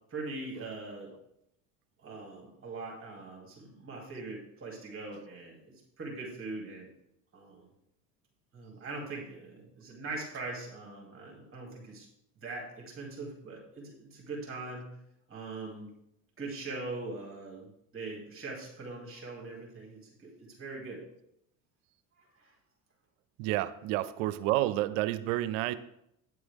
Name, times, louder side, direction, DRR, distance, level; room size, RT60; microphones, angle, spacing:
voice 1, 0.1-1.1 2.0-6.9 7.3-7.7 8.5-12.1 12.4-14.9 15.3-15.9 16.4-17.7 17.9-21.0 22.2-22.5, right 3 dB, 30° right, -2 dB, 2.9 m, -41 dB
voice 2, 23.4-25.7, right 15 dB, 75° right, 14 dB, 0.6 m, -30 dB
9.3 x 7.8 x 3.6 m, 0.79 s
supercardioid pair, 90°, 41 cm